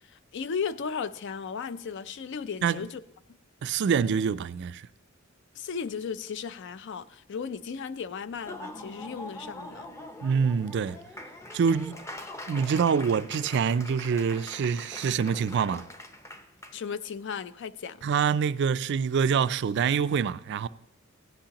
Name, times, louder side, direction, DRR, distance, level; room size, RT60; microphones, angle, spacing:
voice 1, 0.0-3.0 5.6-9.9 16.7-18.0, left 6 dB, 55° left, 0.4 m, -35 dB
voice 2, 3.6-4.9 10.2-11.0 11.5-12.0 12.5-15.9 18.0-20.7, right 6 dB, 55° right, 0.3 m, -26 dB
Laughter / Applause, 8.3-16.7, left 1 dB, 15° left, 0.6 m, -43 dB
16.0 x 10.0 x 2.9 m
head